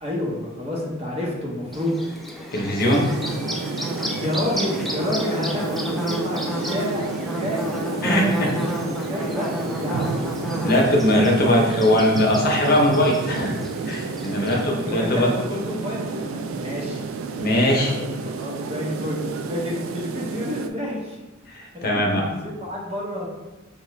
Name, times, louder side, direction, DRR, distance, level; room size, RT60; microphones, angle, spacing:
voice 1, 0.0-2.0 4.2-10.2 14.3-17.0 17.7-21.2 21.8-23.3, left 1 dB, 35° right, -3 dB, 0.9 m, -30 dB
Bird / Buzz, 1.7-14.6, equal, ahead, 0.4 m, -31 dB
voice 2, 2.5-3.1 8.0-8.5 10.6-13.5 13.9-15.3 17.4-17.9 21.5-22.2, left 1 dB, 50° left, 0 dB, 0.7 m, -20 dB
sound 1, 2.8-20.7, right 4 dB, 90° right, 0.3 m, -31 dB
5.7 x 2.4 x 3.1 m, 1.1 s
head